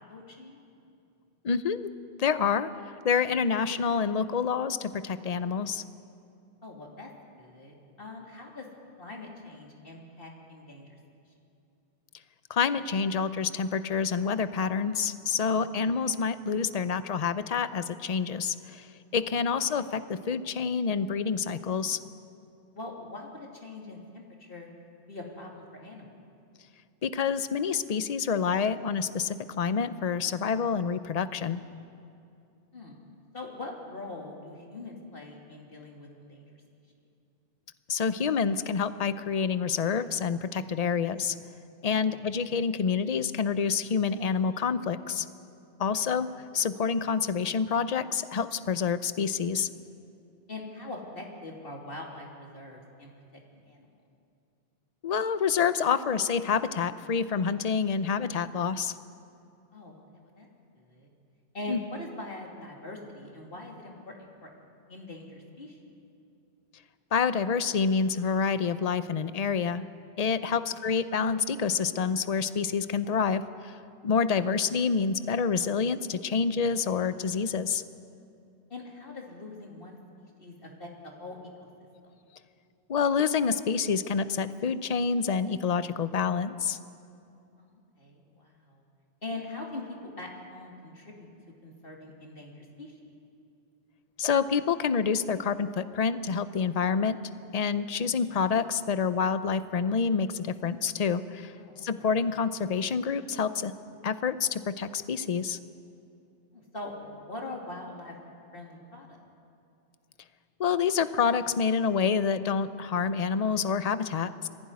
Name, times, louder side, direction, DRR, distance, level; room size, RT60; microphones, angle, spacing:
voice 1, 0.1-0.6 6.6-7.1 7.4-8.7 9.0-11.0 15.7-15.8 19.2-19.6 22.7-24.7 25.1-26.2 32.7-33.0 33.3-36.5 42.1-42.2 45.9-46.2 50.5-53.1 53.7-53.9 59.7-60.5 60.7-61.1 61.5-64.1 64.4-64.5 64.9-65.8 70.5-70.7 78.7-81.7 87.6-88.8 89.2-91.3 91.6-93.1 98.3-98.4 101.6-102.1 106.5-108.1 108.5-109.2, left 2 dB, 60° left, -1 dB, 3.1 m, -43 dB
voice 2, 1.4-1.9 2.2-2.7 3.0-5.8 12.5-22.0 27.0-31.6 37.9-41.4 41.8-45.3 45.8-49.7 55.0-59.0 61.7-61.8 67.1-69.8 70.2-73.8 74.0-77.8 82.9-86.8 94.2-97.2 97.5-103.7 104.0-105.6 110.6-114.5, left 6 dB, 40° left, 13 dB, 0.7 m, -27 dB
21.5 x 15.5 x 9.6 m, 2.6 s
omnidirectional pair, 1.1 m